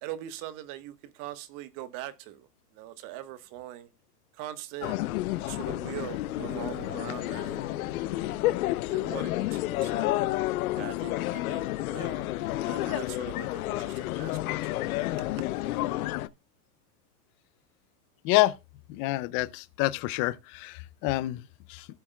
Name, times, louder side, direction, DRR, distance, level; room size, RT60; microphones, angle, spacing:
voice 1, 0.0-3.9 4.3-5.0 5.5-7.6 8.1-8.4 8.9-10.2 10.7-12.3 12.6-14.9 15.4-15.5, right 13 dB, 40° right, 1.3 m, -42 dB
sound 1, 4.8-16.3, left 16 dB, 65° left, 0.8 m, -30 dB
sound 2, 6.3-11.7, right 3 dB, 85° right, 3.4 m, -50 dB
voice 2, 18.2-18.6 18.9-21.9, left 18 dB, 30° left, 0.4 m, -28 dB
15.5 x 7.1 x 2.3 m
hypercardioid pair, 125°, 47 cm